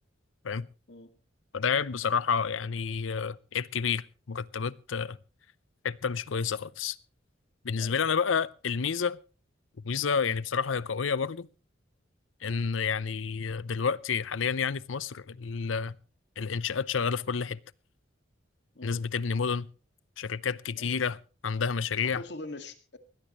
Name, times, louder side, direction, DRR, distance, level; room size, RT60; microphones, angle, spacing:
voice 1, 1.5-5.2 5.8-7.0 7.6-9.2 9.8-11.5 12.4-16.0 16.4-17.6 18.8-19.7 20.2-21.2 21.4-22.2, left 6 dB, 85° left, 0.6 m, -30 dB
voice 2, 22.0-23.0, left 2 dB, 60° left, 2.0 m, -44 dB
21.0 x 17.0 x 3.1 m
head